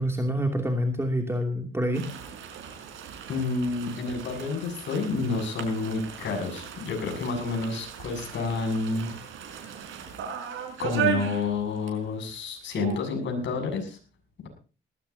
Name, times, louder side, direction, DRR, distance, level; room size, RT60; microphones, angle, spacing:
voice 1, 0.0-2.0, equal, 10° right, 3 dB, 2.8 m, -27 dB
sound 1, 1.9-12.0 12.3-12.4 12.7-13.1, right 8 dB, 85° right, 4.9 m, -36 dB
voice 2, 3.3-9.1 10.8-14.0, left 4 dB, 65° left, 4 dB, 7.1 m, -29 dB
19.5 x 16.5 x 2.8 m, 0.35 s
cardioid pair, 90°, 20 cm